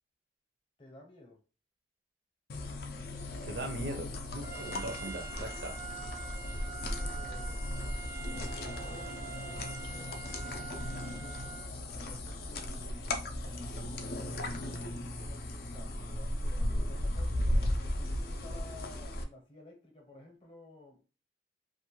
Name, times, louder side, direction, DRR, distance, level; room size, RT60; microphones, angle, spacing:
voice 1, 0.8-1.4 4.8-4.9 6.8-7.7 8.3-11.5 11.9-13.2 13.4-17.4 17.9-21.1, left 1 dB, 30° left, 0.7 m, -53 dB
sound 1, 2.5-19.2, left 1 dB, 55° left, 0.4 m, -36 dB
voice 2, 3.4-5.8, right 2 dB, 70° right, 0.5 m, -40 dB
Trumpet, 4.4-11.7, right 7 dB, 15° right, 0.4 m, -46 dB
2.5 x 2.2 x 2.9 m
head